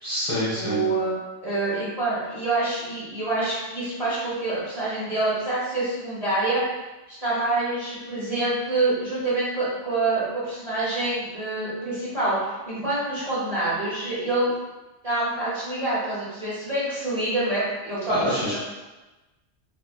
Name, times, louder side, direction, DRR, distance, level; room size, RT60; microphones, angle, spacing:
voice 1, 0.0-0.8 18.1-18.6, equal, 30° left, -8 dB, 1.1 m, -26 dB
voice 2, 0.5-6.6 7.2-14.5 15.0-18.6, right 2 dB, 35° right, -10 dB, 1.1 m, -26 dB
4.3 x 2.6 x 2.3 m, 1.1 s
omnidirectional pair, 1.2 m